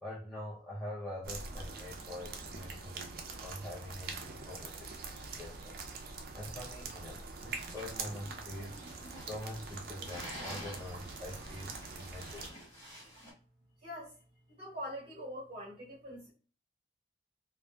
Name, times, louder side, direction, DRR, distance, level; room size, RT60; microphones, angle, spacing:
voice 1, 0.0-5.1 5.4-12.8, left 1 dB, ahead, -9 dB, 0.5 m, -45 dB
sound 1, 1.2-12.5, right 4 dB, 50° right, 0.4 m, -44 dB
sound 2, 7.5-13.3, equal, 15° left, 1.0 m, -49 dB
voice 2, 13.8-14.1 14.5-16.3, equal, 30° right, -5 dB, 1.4 m, -43 dB
2.7 x 2.1 x 2.2 m, 0.39 s
head